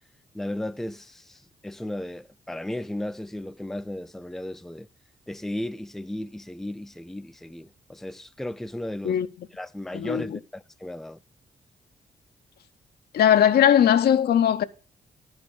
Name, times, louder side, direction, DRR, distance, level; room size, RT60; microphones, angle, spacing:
voice 1, 0.3-4.9 5.3-9.2 9.6-11.2, left 1 dB, ahead, 0.5 m, -35 dB
voice 2, 9.9-10.4 13.1-14.6, left 9 dB, 75° left, 0.6 m, -19 dB
10.5 x 4.8 x 6.9 m
supercardioid pair, 55°, 16 cm